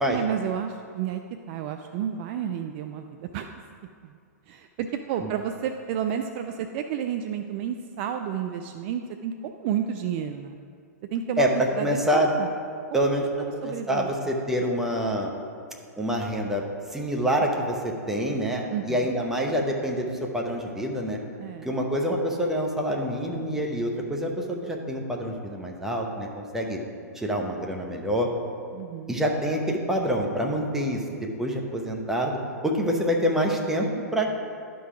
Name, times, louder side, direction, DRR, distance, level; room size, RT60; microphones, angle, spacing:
voice 1, 0.1-3.5 4.0-4.1 4.5-10.6 11.1-12.5 13.4-14.1 18.7-19.1 21.4-21.8 28.7-29.2, right 8 dB, 40° right, 6 dB, 0.4 m, -31 dB
voice 2, 11.4-12.3 12.9-15.3 16.0-21.2 21.6-26.8 27.1-28.3 29.1-34.3, equal, 5° right, 0 dB, 0.9 m, -26 dB
11.0 x 3.8 x 4.9 m, 2.3 s
hypercardioid pair, 115°, 9 cm